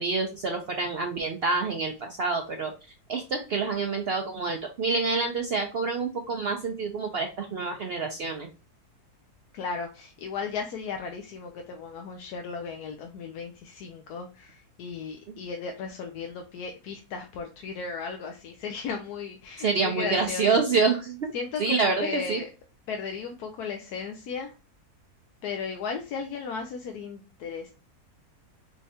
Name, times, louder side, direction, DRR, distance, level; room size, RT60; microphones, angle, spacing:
voice 1, 0.0-2.7 3.1-8.5 19.6-21.2 21.6-22.4, right 4 dB, 70° right, 4 dB, 0.6 m, -27 dB
voice 2, 9.5-20.6 21.3-22.5 22.9-24.5 25.4-27.7, left 5 dB, 80° left, 4 dB, 1.1 m, -35 dB
4.5 x 3.2 x 2.8 m, 0.31 s
omnidirectional pair, 1.7 m